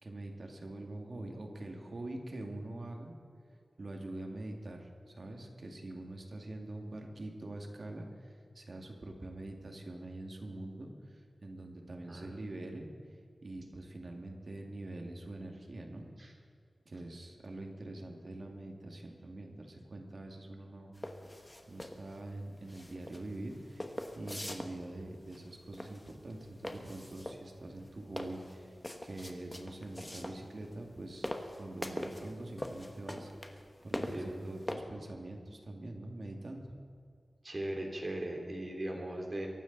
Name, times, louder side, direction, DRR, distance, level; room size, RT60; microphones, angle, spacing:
voice 1, 0.0-3.1 3.8-12.9 13.4-16.1 16.9-20.9 21.7-28.8 29.0-31.3 31.5-36.6, right 2 dB, 55° right, 2 dB, 2.3 m, -44 dB
sound 1, 21.0-34.8, left 1 dB, 15° left, 1.5 m, -43 dB
voice 2, 37.4-39.5, right 1 dB, 40° right, 1 dB, 3.1 m, -38 dB
23.0 x 12.0 x 4.1 m, 2.4 s
wide cardioid pair, 65°, 0 cm